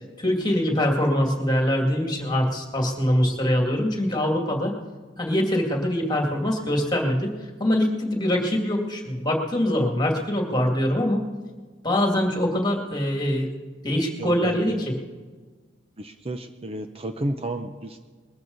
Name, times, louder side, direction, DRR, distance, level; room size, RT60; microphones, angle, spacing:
voice 1, 0.2-4.7 5.2-7.3 7.6-11.2 11.8-13.5 13.8-15.0, left 1 dB, 25° left, 2 dB, 2.4 m, -23 dB
voice 2, 13.9-14.8 16.0-18.0, right 1 dB, 30° right, 7 dB, 0.7 m, -32 dB
21.0 x 14.0 x 4.0 m, 1.4 s
head